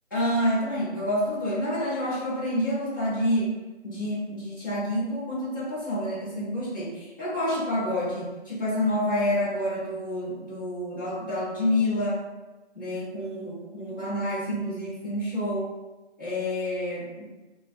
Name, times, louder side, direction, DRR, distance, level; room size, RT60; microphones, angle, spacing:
voice 1, 0.1-3.5 3.8-12.2 12.7-15.7 16.2-17.2, left 1 dB, 15° left, -15 dB, 1.4 m, -28 dB
5.2 x 2.3 x 2.9 m, 1.1 s
figure-of-eight pair, 175°, 35 cm